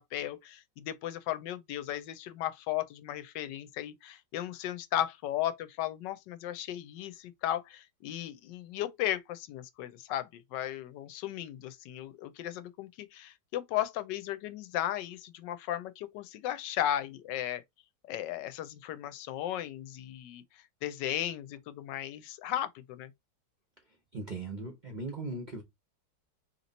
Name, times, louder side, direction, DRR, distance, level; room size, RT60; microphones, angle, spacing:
voice 1, 0.0-17.6 18.1-20.4 20.8-23.1, left 12 dB, 80° left, 1.2 m, -35 dB
voice 2, 24.1-25.6, right 3 dB, 40° right, 0.6 m, -38 dB
3.0 x 2.9 x 4.0 m
omnidirectional pair, 1.9 m